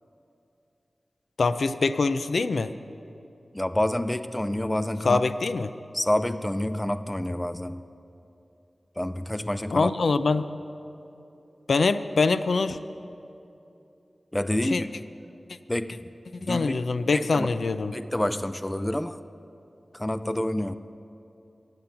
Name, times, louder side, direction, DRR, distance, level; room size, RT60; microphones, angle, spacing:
voice 1, 1.4-2.7 5.0-5.7 9.7-10.5 11.7-12.8 14.7-14.8 16.4-17.9, left 4 dB, 80° left, 12 dB, 0.4 m, -24 dB
voice 2, 3.5-5.2 5.9-7.8 9.0-9.9 14.3-14.9 15.7-16.1 16.4-16.8 17.1-17.5 17.9-19.2 19.9-20.8, left 1 dB, 15° left, 11 dB, 0.4 m, -28 dB
15.5 x 8.9 x 7.1 m, 2.8 s
wide cardioid pair, 55°, 0 cm